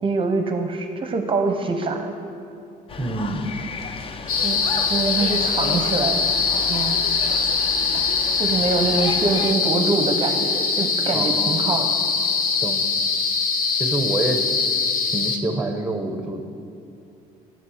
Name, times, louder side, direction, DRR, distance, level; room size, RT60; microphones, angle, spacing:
voice 1, 0.0-2.1 4.4-4.6 4.9-6.2 6.7-7.0 7.9-8.0 8.4-11.9, right 3 dB, 30° right, 5 dB, 0.7 m, -24 dB
sound 1, 2.9-9.5, left 4 dB, 35° left, 0.6 m, -33 dB
voice 2, 3.0-3.4 11.1-11.7 12.6-12.8 13.7-14.4 15.1-16.5, right 2 dB, 5° right, 6 dB, 0.9 m, -26 dB
sound 2, 4.3-15.4, left 5 dB, 55° left, 0.9 m, -22 dB
8.4 x 7.7 x 6.4 m, 2.6 s
cardioid pair, 110°, 17 cm